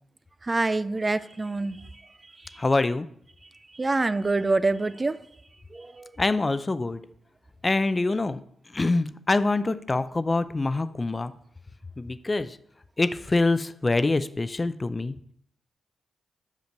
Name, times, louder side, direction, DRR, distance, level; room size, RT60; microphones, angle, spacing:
voice 1, 0.4-1.8 3.7-5.2 5.7-6.1, right 3 dB, 35° right, 14 dB, 0.3 m, -26 dB
voice 2, 2.6-3.1 6.2-7.0 7.6-8.4 8.7-11.3 12.0-12.6 13.0-15.1, left 2 dB, 30° left, 13 dB, 0.5 m, -25 dB
5.2 x 5.1 x 6.5 m, 0.69 s
supercardioid pair, 45°, 0 cm